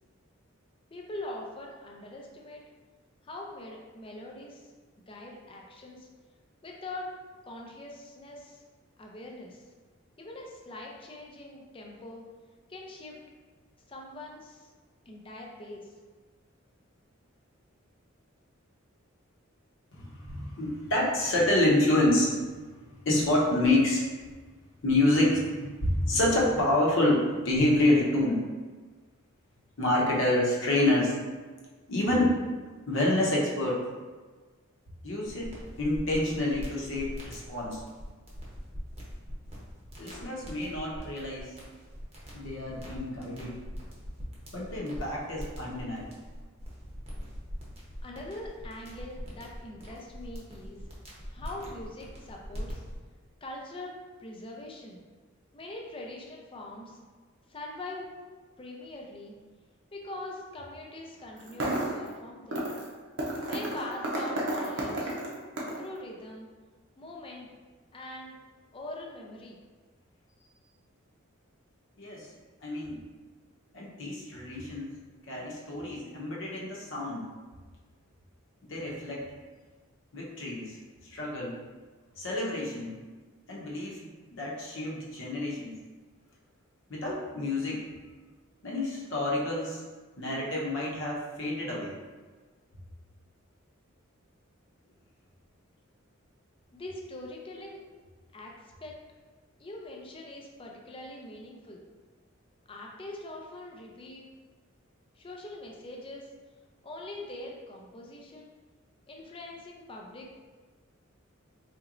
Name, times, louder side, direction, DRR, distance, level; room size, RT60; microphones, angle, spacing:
voice 1, 0.9-2.6 3.2-4.7 5.1-6.1 6.6-7.1 7.4-8.6 9.0-9.6 10.2-12.2 12.7-13.2 13.9-14.7 15.1-15.9 48.0-50.8 51.3-52.8 53.4-55.0 55.5-57.0 57.5-58.1 58.6-59.3 59.9-62.7 63.4-65.1 65.8-66.5 67.0-67.5 67.9-68.4 68.7-69.6 96.7-97.8 98.3-99.0 99.6-101.8 102.7-104.3 105.2-106.3 106.8-108.5 109.1-110.3, left 1 dB, 25° left, -1 dB, 0.5 m, -43 dB
voice 2, 19.9-22.3 23.0-24.0 24.8-28.4 29.8-31.2 31.9-32.4 32.9-33.8 35.0-35.5 35.8-37.8 40.0-41.5 42.3-43.6 44.5-46.1 72.0-72.3 72.6-73.0 73.7-74.9 75.3-77.2 78.6-79.2 80.1-80.8 81.0-81.6 82.2-82.9 83.5-84.0 84.3-85.7 86.9-87.8 88.6-89.8 90.2-91.9, left 1 dB, 65° left, -4 dB, 0.8 m, -27 dB
sound 1, 35.3-53.0, equal, 30° right, 0.8 m, -43 dB
sound 2, 61.4-62.1 62.5-62.9 63.2-65.9, right 1 dB, 60° right, 0.7 m, -31 dB
4.3 x 3.0 x 2.5 m, 1.4 s
head